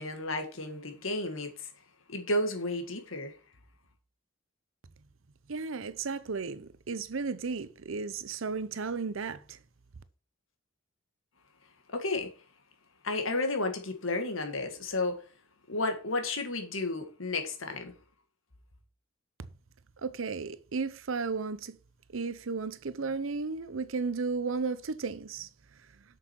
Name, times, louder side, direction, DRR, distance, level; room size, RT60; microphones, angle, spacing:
voice 1, 0.0-1.7 2.1-3.4 11.9-12.3 13.0-15.2 15.7-17.9, left 2 dB, 90° left, 1.9 m, -32 dB
voice 2, 5.5-9.6 20.0-21.8 22.1-25.5, right 4 dB, 85° right, 0.7 m, -34 dB
7.6 x 6.6 x 4.5 m
head